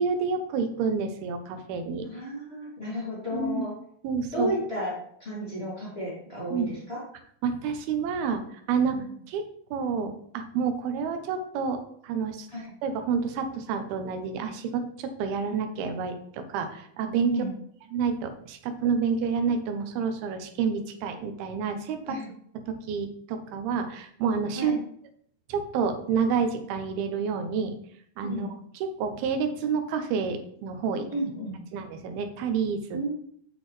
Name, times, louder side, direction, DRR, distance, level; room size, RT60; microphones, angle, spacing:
voice 1, 0.0-2.1 3.3-3.6 4.0-4.5 6.5-6.7 7.4-8.4 8.7-9.4 9.7-12.5 12.8-17.4 17.9-22.2 22.5-24.8 25.5-27.8 28.2-31.1 31.7-33.0, right 5 dB, 85° right, 7 dB, 2.8 m, -29 dB
voice 2, 2.0-3.7 4.3-4.9 5.2-7.0 8.9-9.1 12.5-12.7 17.3-17.5 22.1-22.3 24.6-24.8 28.2-28.5 31.1-31.6 32.9-33.1, equal, 20° left, -7 dB, 2.1 m, -33 dB
8.2 x 6.2 x 3.3 m, 0.64 s
omnidirectional pair, 4.4 m